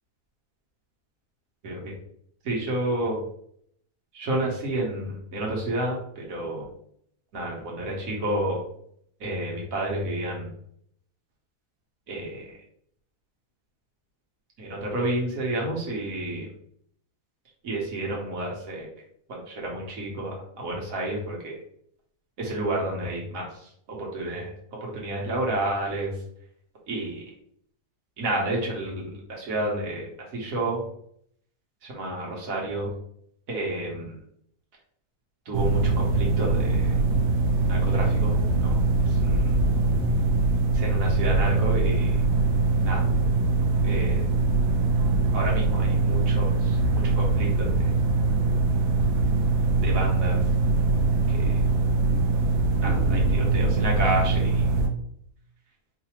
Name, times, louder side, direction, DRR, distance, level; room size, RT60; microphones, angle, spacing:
voice 1, 1.6-1.9 2.4-3.2 4.1-6.7 7.3-8.6 9.2-10.5 12.1-12.5 14.6-16.5 17.6-18.9 19.3-21.6 22.4-26.2 26.9-27.2 28.2-30.9 31.8-32.9 33.5-34.2 35.4-36.9 37.7-38.3 38.6-39.6 40.5-42.2 42.8-43.1 43.8-44.3 45.3-47.9 49.8-50.4 51.3-51.6 52.8-54.7, right 1 dB, 65° right, -2 dB, 1.5 m, -30 dB
sound 1, 35.5-54.9, right 3 dB, 85° right, 1.1 m, -22 dB
4.8 x 2.6 x 3.0 m, 0.67 s
omnidirectional pair, 1.6 m